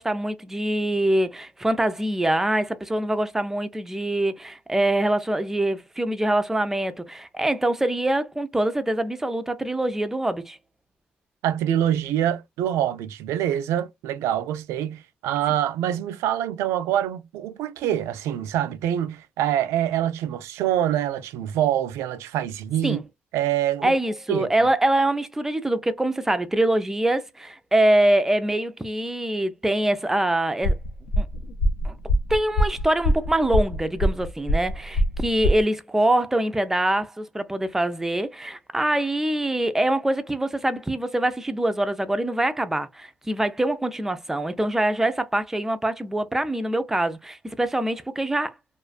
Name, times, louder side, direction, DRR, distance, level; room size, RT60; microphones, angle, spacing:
voice 1, 0.0-10.6 22.8-23.0 23.8-30.8 31.2-31.3 31.8-32.0 32.3-48.5, right 1 dB, 10° right, 0.4 m, -24 dB
voice 2, 11.4-23.0 23.3-23.9 24.3-24.5, right 11 dB, 80° right, 0.4 m, -25 dB
sound 1, 30.6-35.6, equal, 80° left, 0.5 m, -23 dB
2.4 x 2.3 x 2.4 m
cardioid pair, 100°, 5 cm